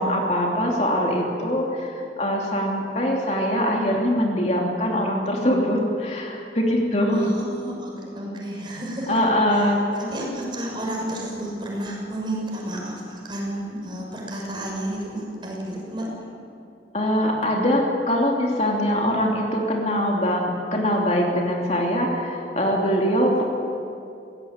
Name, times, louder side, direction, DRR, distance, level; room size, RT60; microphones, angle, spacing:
voice 1, 0.0-7.2 9.1-9.8 16.9-23.4, equal, 40° left, -1 dB, 2.9 m, -22 dB
voice 2, 7.1-9.2 9.5-16.1 23.3-23.4, right 1 dB, 25° right, -2 dB, 6.3 m, -31 dB
23.5 x 18.0 x 9.0 m, 2.5 s
head